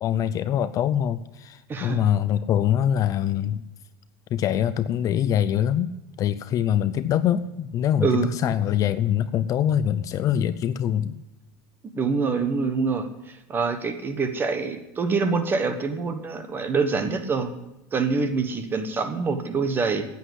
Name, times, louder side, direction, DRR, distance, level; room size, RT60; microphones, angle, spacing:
voice 1, 0.0-3.6 4.3-5.9 6.2-11.2, left 10 dB, 40° left, 13 dB, 0.5 m, -24 dB
voice 2, 1.7-2.1 8.0-8.3 11.9-17.5 17.9-20.1, right 4 dB, 25° right, 9 dB, 1.3 m, -25 dB
9.8 x 8.3 x 9.8 m, 0.95 s
supercardioid pair, 130°, 9 cm